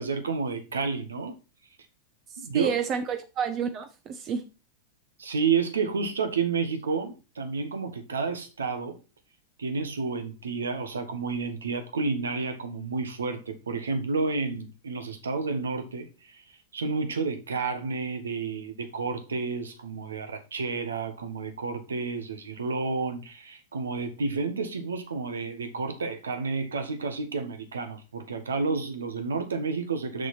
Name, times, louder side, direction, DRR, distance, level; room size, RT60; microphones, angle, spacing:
voice 1, 0.0-1.4 2.4-2.7 5.2-9.0 9.6-16.4 16.7-30.3, right 4 dB, 70° right, 1.3 m, -30 dB
voice 2, 2.3-4.5, right 7 dB, 30° right, 0.8 m, -30 dB
6.8 x 6.4 x 4.3 m
figure-of-eight pair, 90°, 0 cm